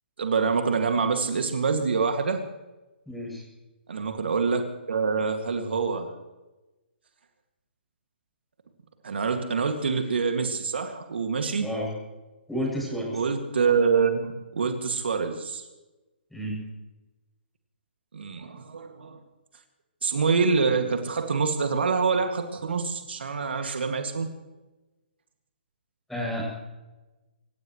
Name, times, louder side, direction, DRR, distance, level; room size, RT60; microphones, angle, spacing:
voice 1, 0.2-2.4 3.9-6.1 9.0-11.7 13.1-15.6 18.1-19.2 20.0-24.3, right 5 dB, 75° right, 5 dB, 2.2 m, -26 dB
voice 2, 3.1-3.4 11.6-11.9 12.5-13.2 16.3-16.6 26.1-26.4, equal, ahead, -3 dB, 7.9 m, -30 dB
27.0 x 16.0 x 3.2 m, 1.1 s
hypercardioid pair, 140°, 6 cm